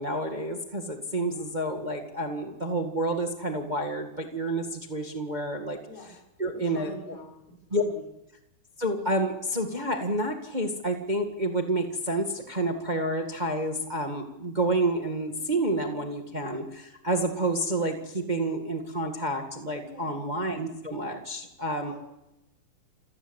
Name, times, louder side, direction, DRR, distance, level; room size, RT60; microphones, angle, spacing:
voice 1, 0.0-5.8 6.4-7.2 7.7-7.8 8.8-21.9, right 1 dB, 30° right, 4 dB, 0.8 m, -29 dB
voice 2, 6.6-7.3 7.7-8.0 19.8-20.3 21.8-21.9, left 2 dB, 80° left, -2 dB, 6.3 m, -45 dB
28.5 x 16.0 x 8.2 m, 0.91 s
omnidirectional pair, 4.3 m